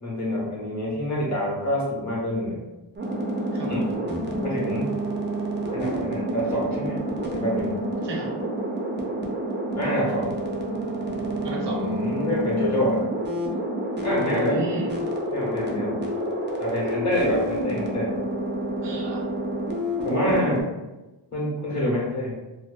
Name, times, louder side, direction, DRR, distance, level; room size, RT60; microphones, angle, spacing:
voice 1, 0.0-2.6 3.6-3.9 4.4-4.9 5.7-7.0 7.3-7.8 9.8-10.3 11.7-13.0 14.0-14.6 15.3-16.0 16.6-18.1 20.0-20.7 21.3-22.3, equal, 40° left, -4 dB, 0.9 m, -26 dB
sound 1, 3.0-20.6, right 1 dB, 25° right, 0.4 m, -29 dB
voice 2, 3.5-3.9 8.0-8.3 11.4-12.0 14.2-14.9 18.8-19.3, right 2 dB, 65° right, -1 dB, 0.7 m, -33 dB
2.6 x 2.0 x 2.4 m, 1.1 s
wide cardioid pair, 95°, 45 cm